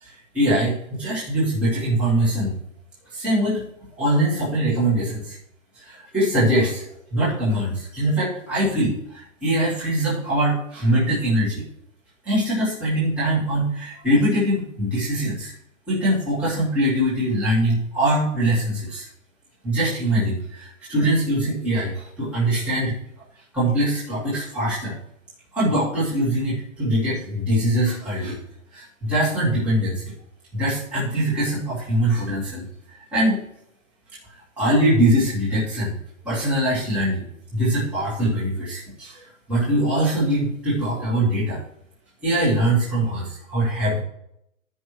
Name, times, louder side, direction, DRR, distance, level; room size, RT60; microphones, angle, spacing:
voice 1, 0.3-2.6 3.1-3.6 4.0-5.4 5.8-6.8 7.1-11.6 12.2-15.5 15.9-19.1 19.6-22.9 23.5-24.9 25.5-28.4 28.7-30.1 30.5-32.6 33.1-33.4 34.6-35.9 36.2-37.3 37.5-41.6 42.2-44.0, right 1 dB, 5° right, -10 dB, 1.6 m, -22 dB
14.5 x 5.4 x 3.1 m, 0.77 s
hypercardioid pair, 170°, 42 cm